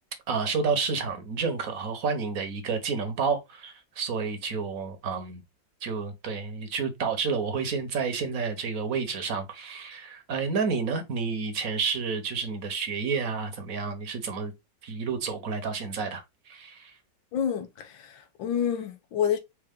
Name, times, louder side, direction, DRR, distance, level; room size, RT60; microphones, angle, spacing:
voice 1, 0.3-5.4 5.8-14.5 14.8-16.9, right 5 dB, 55° right, 1.2 m, -30 dB
voice 2, 17.3-19.4, left 8 dB, 85° left, 1.6 m, -28 dB
4.6 x 2.9 x 3.6 m
omnidirectional pair, 2.0 m